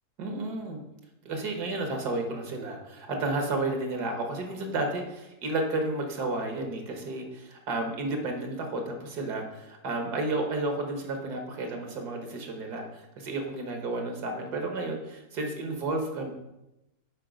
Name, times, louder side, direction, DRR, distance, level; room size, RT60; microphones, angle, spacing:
voice 1, 0.2-0.8 1.3-16.3, right 2 dB, 70° right, 3 dB, 1.8 m, -32 dB
7.5 x 4.9 x 5.1 m, 0.92 s
omnidirectional pair, 1.8 m